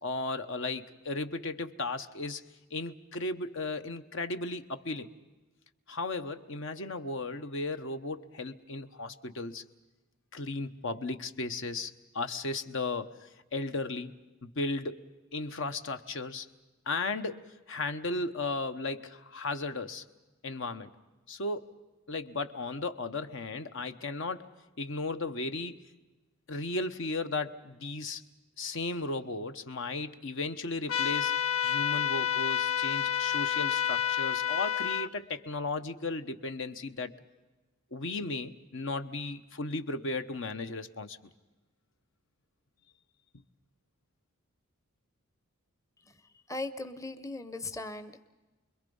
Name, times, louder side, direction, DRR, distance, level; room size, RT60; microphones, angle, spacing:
voice 1, 0.0-5.1 5.9-9.6 10.3-13.1 13.5-15.1 15.3-16.5 16.9-20.0 20.4-20.9 21.3-21.7 22.1-24.5 24.8-25.8 26.5-28.2 28.6-37.1 37.9-41.2, left 3 dB, 65° left, 9 dB, 1.1 m, -35 dB
sound 1, 30.9-35.1, left 9 dB, 85° left, 0.7 m, -29 dB
voice 2, 46.0-48.2, left 2 dB, 15° left, 12 dB, 0.8 m, -39 dB
29.5 x 22.0 x 5.5 m, 1.2 s
head